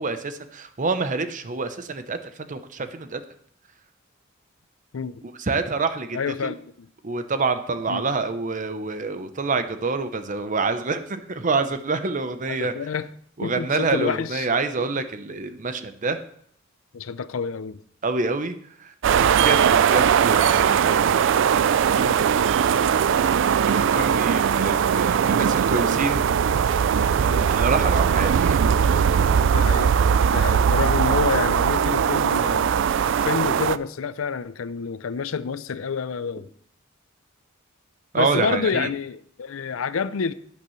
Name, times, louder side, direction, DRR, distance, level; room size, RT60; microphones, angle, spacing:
voice 1, 0.0-3.2 5.2-6.5 7.0-12.7 13.4-16.2 18.0-21.2 23.6-26.3 27.5-28.8 38.1-38.9, right 4 dB, 40° right, 0.7 m, -27 dB
voice 2, 6.1-6.9 7.9-8.0 12.5-13.1 13.4-14.5 14.8-15.0 16.9-17.8 19.4-19.6 22.0-22.2 27.2-27.5 29.3-29.9 30.3-32.7 33.2-36.5 38.2-40.3, left 6 dB, 80° left, 0.5 m, -28 dB
sound 1, 19.0-33.8, right 7 dB, 65° right, 0.3 m, -20 dB
12.0 x 9.0 x 3.1 m
head